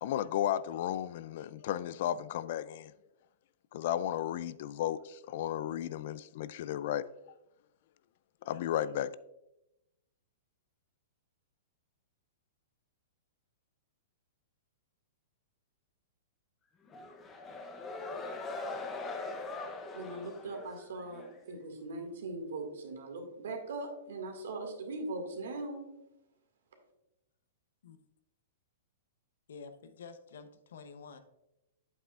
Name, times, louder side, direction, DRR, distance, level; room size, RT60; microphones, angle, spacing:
voice 1, 0.0-2.9 3.7-7.1 8.4-9.2, left 11 dB, 55° left, 0.3 m, -34 dB
sound 1, 16.9-21.4, left 3 dB, 15° left, 0.7 m, -41 dB
voice 2, 19.9-25.8, right 2 dB, 80° right, 1.9 m, -40 dB
voice 3, 29.5-31.2, left 5 dB, 80° left, 0.8 m, -49 dB
8.1 x 7.8 x 2.4 m
hypercardioid pair, 155°, 0 cm